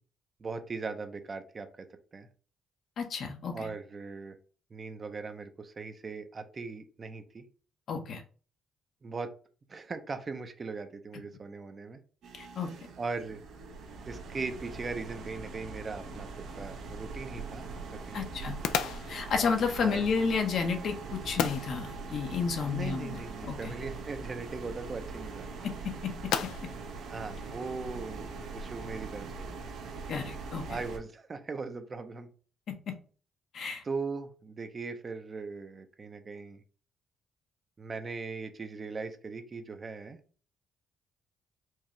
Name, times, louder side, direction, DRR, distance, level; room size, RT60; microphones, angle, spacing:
voice 1, 0.4-1.9 2.1-2.3 3.5-4.4 4.7-7.4 9.0-9.3 9.7-12.0 13.0-13.4 14.0-16.3 16.5-18.3 19.8-20.0 22.7-25.5 27.1-29.7 30.7-32.3 33.8-36.6 37.8-40.2, right 4 dB, 35° right, 8 dB, 0.6 m, -39 dB
voice 2, 3.0-3.7 7.9-8.2 12.4-12.7 18.1-18.6 19.1-23.2 23.5-23.7 25.6-25.7 26.0-26.1 30.1-30.6 33.5-33.8, left 5 dB, 65° left, 4 dB, 0.8 m, -31 dB
sound 1, 12.2-31.0, right 4 dB, 75° right, 0.8 m, -42 dB
sound 2, 16.5-28.2, left 8 dB, 90° left, 0.3 m, -40 dB
4.5 x 2.4 x 3.0 m, 0.39 s
cardioid pair, 90°, 0 cm